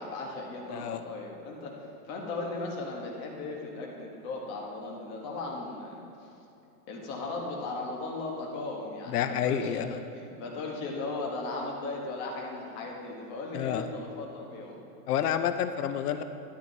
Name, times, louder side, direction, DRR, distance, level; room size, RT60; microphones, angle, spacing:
voice 1, 0.0-1.7 2.0-6.0 6.9-14.8, left 3 dB, 25° left, 0 dB, 1.1 m, -37 dB
voice 2, 9.1-10.0 13.5-13.9 15.1-16.2, left 9 dB, 75° left, 9 dB, 0.7 m, -29 dB
12.5 x 11.5 x 2.7 m, 2.8 s
supercardioid pair, 170°, 46 cm